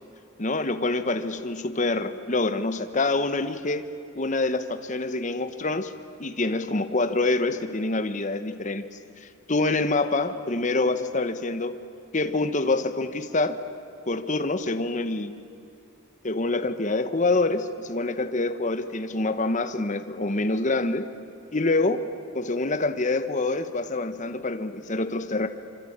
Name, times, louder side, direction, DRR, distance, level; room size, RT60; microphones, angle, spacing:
voice 1, 0.4-3.9 4.2-5.9 6.2-8.8 9.2-11.8 12.1-13.6 14.1-15.4 16.2-21.1 21.5-25.5, left 2 dB, 35° left, 9 dB, 1.0 m, -26 dB
26.0 x 24.5 x 8.7 m, 2.7 s
head